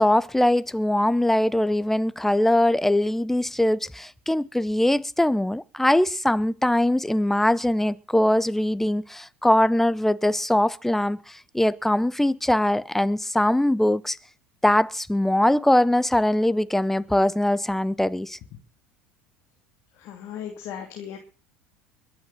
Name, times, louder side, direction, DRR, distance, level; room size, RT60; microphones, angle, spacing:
voice 1, 0.0-14.2 14.6-18.4, left 1 dB, 5° left, 0.8 m, -22 dB
voice 2, 19.9-21.2, left 9 dB, 55° left, 2.7 m, -37 dB
22.0 x 8.1 x 6.0 m
hypercardioid pair, 70°, 6 cm